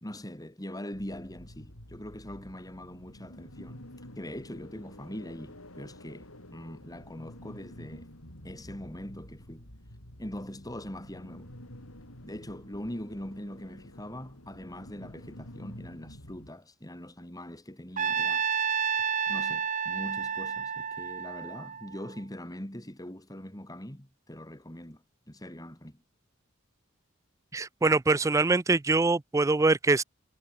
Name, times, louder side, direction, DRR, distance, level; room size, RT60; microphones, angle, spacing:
voice 1, 0.0-3.8 4.1-8.1 8.4-9.7 10.2-11.5 12.2-18.4 19.3-26.0, left 1 dB, 20° left, 3.2 m, -42 dB
sound 1, 0.9-16.5, left 1 dB, 90° left, 7.3 m, -49 dB
Trumpet, 18.0-22.2, right 7 dB, 35° right, 1.0 m, -30 dB
voice 2, 27.5-30.0, right 3 dB, 15° right, 0.3 m, -24 dB
head